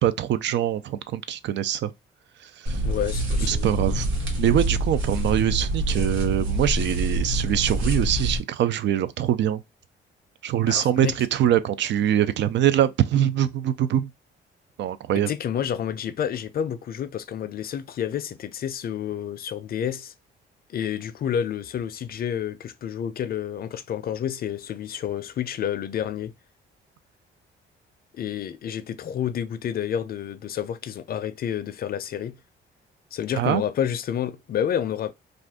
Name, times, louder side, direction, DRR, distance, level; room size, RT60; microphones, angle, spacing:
voice 1, 0.0-1.9 2.4-2.8 3.4-4.1 4.4-9.6 10.4-14.1 14.8-15.3 33.3-33.6, right 11 dB, 65° right, 0.4 m, -23 dB
sound 1, 2.7-8.4, right 1 dB, 90° right, 1.1 m, -26 dB
voice 2, 2.8-3.7 10.7-11.1 15.3-20.1 20.7-26.3 28.1-32.4 33.1-35.1, left 9 dB, 50° left, 0.5 m, -29 dB
2.5 x 2.5 x 3.4 m
cardioid pair, 90°, 20 cm